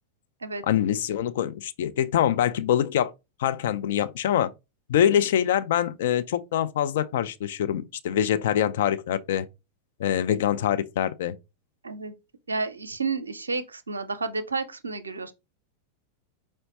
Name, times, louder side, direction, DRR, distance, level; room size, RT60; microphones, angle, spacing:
voice 1, 0.6-3.1 3.4-4.5 4.9-9.5 10.0-11.3, left 10 dB, 55° left, 0.4 m, -24 dB
voice 2, 12.5-15.3, right 4 dB, 75° right, 0.5 m, -31 dB
4.6 x 2.1 x 4.1 m
figure-of-eight pair, 90°, 0 cm